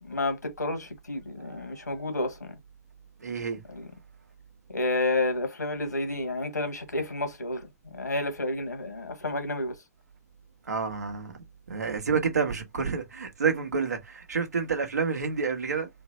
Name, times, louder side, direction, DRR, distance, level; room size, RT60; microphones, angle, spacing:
voice 1, 0.0-2.6 3.7-3.9 4.7-9.8, left 2 dB, 90° left, 1.4 m, -30 dB
voice 2, 1.4-2.2 3.2-3.6 10.6-11.4 11.7-15.9, right 5 dB, 80° right, 1.2 m, -29 dB
3.9 x 2.1 x 4.2 m
figure-of-eight pair, 115°, 9 cm